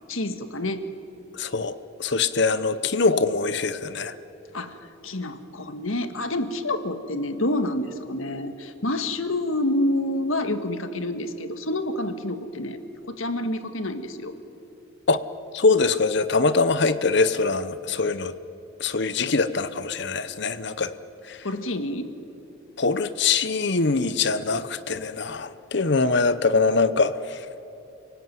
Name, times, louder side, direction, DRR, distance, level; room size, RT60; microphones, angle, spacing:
voice 1, 0.1-0.8 4.5-4.8 5.0-12.8 13.1-14.3 21.4-22.1, left 1 dB, 80° left, 9 dB, 1.8 m, -28 dB
voice 2, 1.3-4.1 15.1-15.2 15.5-18.3 18.8-20.9 21.3-21.4 22.8-27.4, left 4 dB, 55° left, 13 dB, 0.9 m, -23 dB
30.0 x 18.0 x 9.4 m, 2.9 s
head